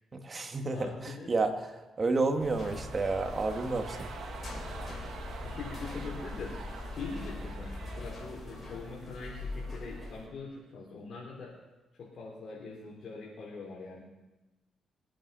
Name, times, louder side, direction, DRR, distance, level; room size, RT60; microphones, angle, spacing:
voice 1, 0.1-0.9 1.3-1.5 2.0-4.1, right 3 dB, 35° right, 5 dB, 1.9 m, -30 dB
voice 2, 0.7-1.3 2.2-2.4 5.4-6.6 6.9-11.6 11.9-14.0, left 4 dB, 60° left, -5 dB, 3.8 m, -43 dB
sound 1, 2.3-10.4 10.7-10.8, right 5 dB, 70° right, 1.5 m, -47 dB
sound 2, 2.4-10.3, left 2 dB, 40° left, 4.1 m, -41 dB
23.0 x 9.1 x 5.6 m, 1.1 s
cardioid pair, 80°, 0 cm